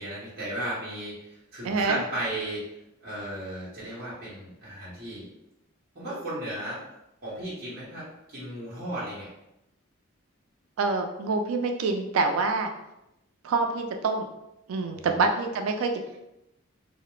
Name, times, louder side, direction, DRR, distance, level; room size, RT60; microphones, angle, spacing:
voice 1, 0.0-2.6 3.0-5.3 5.9-6.8 7.2-9.3 14.9-15.2, right 1 dB, 45° right, -9 dB, 0.9 m, -35 dB
voice 2, 1.6-2.0 10.8-12.7 13.4-14.3 14.7-15.9, right 3 dB, 90° right, 5 dB, 0.3 m, -26 dB
2.3 x 2.0 x 3.0 m, 0.87 s
head